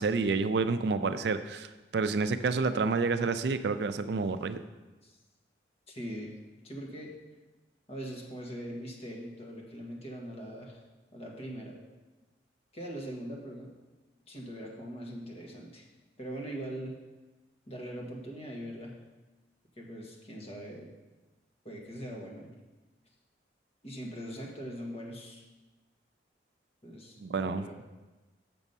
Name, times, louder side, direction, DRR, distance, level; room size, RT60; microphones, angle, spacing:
voice 1, 0.0-4.6 27.2-27.8, right 4 dB, 65° right, 10 dB, 0.4 m, -29 dB
voice 2, 5.9-6.3 6.6-7.1 7.9-10.8 11.1-11.8 12.7-13.7 14.3-15.9 16.2-17.0 17.7-19.0 19.8-20.9 21.6-22.5 23.8-25.4 26.8-27.8, equal, 35° left, -2 dB, 1.5 m, -41 dB
7.3 x 6.1 x 5.4 m, 1.2 s
head